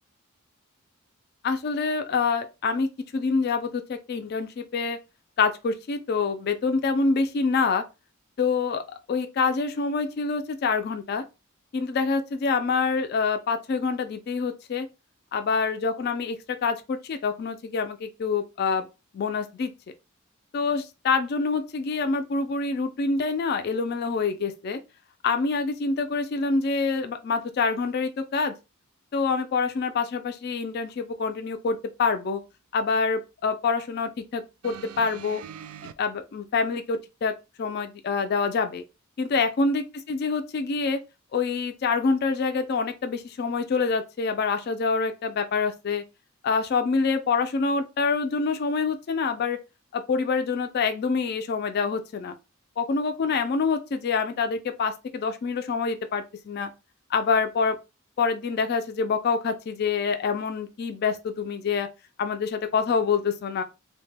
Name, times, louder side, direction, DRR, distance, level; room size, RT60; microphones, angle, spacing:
voice 1, 1.4-2.9 3.1-5.0 5.4-7.8 8.4-8.8 9.1-11.2 11.7-14.9 15.3-18.9 19.1-19.7 20.5-24.8 25.2-28.5 29.1-32.4 32.7-35.4 36.0-37.3 37.6-38.8 39.2-41.0 41.3-46.0 46.4-49.6 49.9-52.3 52.8-56.7 57.1-57.8 58.2-61.9 62.2-63.6, left 4 dB, 45° left, 0.3 m, -26 dB
sound 1, 34.6-35.9 36.9-37.0, right 8 dB, 85° right, 0.3 m, -42 dB
2.7 x 2.1 x 3.2 m
head